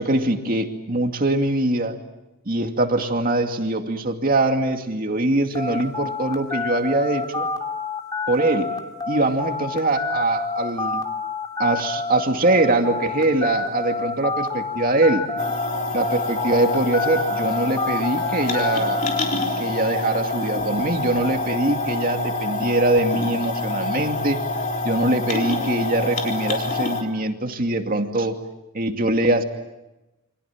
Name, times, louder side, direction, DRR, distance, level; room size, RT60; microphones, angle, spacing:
voice 1, 0.0-2.0 2.5-7.5 8.3-8.8 9.1-11.0 11.6-15.3 15.9-19.1 19.6-24.4 24.8-28.4 28.7-29.4, right 2 dB, 40° right, 4 dB, 2.4 m, -22 dB
sound 1, 5.5-15.7 16.0-19.2, left 4 dB, 20° left, 2.7 m, -28 dB
sound 2, 15.4-27.0, left 2 dB, 35° left, 3.8 m, -26 dB
28.5 x 26.0 x 7.4 m, 0.99 s
head